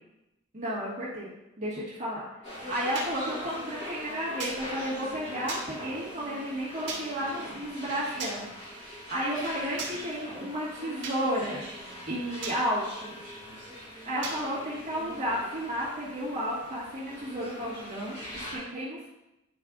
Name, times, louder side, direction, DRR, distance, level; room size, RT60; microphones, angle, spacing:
voice 1, 0.5-1.3 1.6-2.2 2.7-8.5 8.8-11.6 12.1-13.2 14.1-19.1, equal, 40° right, -9 dB, 1.5 m, -32 dB
sound 1, 2.4-18.6, equal, 35° left, 2.2 m, -42 dB
sound 2, 2.9-3.1 4.4-4.6 5.5-5.6 6.9-7.0 8.2-8.4 9.8-9.9 11.0-11.2 12.4-12.6 14.2-14.4, right 4 dB, 65° right, 1.6 m, -35 dB
9.1 x 4.9 x 2.4 m, 0.91 s
head